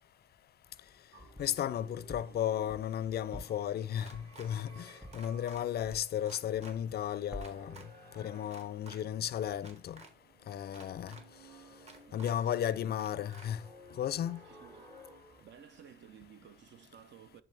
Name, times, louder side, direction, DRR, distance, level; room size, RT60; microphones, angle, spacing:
sound 1, 0.7-1.7 2.1-6.3 6.5-7.0 7.3-7.8, equal, 5° right, 0.8 m, -49 dB
sound 2, 1.1-15.4, right 1 dB, 50° right, 2.9 m, -57 dB
voice 1, 1.4-7.8 8.2-10.0 10.5-11.2 12.1-13.6 13.9-14.4, left 10 dB, 55° left, 0.4 m, -34 dB
sound 3, 4.0-4.5 5.1-5.6 6.2-6.7 7.4-7.9 8.5-9.0 9.6-10.1 10.7-11.2 11.9-12.3 13.0-13.5, right 3 dB, 35° right, 1.4 m, -52 dB
voice 2, 12.1-13.0 14.4-14.9 15.4-17.4, right 9 dB, 65° right, 0.7 m, -55 dB
10.0 x 3.8 x 3.4 m
cardioid pair, 90°, 20 cm